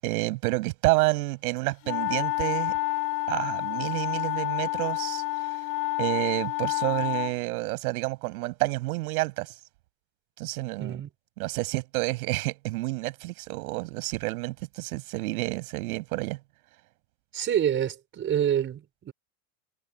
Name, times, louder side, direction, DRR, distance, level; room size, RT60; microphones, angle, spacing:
voice 1, 0.0-2.7 3.3-5.2 6.0-9.5 10.4-11.0 11.4-16.4, right 21 dB, 75° right, 6.8 m, -29 dB
sound 1, 1.8-7.3, left 21 dB, 45° left, 5.0 m, -29 dB
voice 2, 10.8-11.1 17.3-19.1, right 9 dB, 25° right, 5.2 m, -27 dB
supercardioid pair, 155°, 44 cm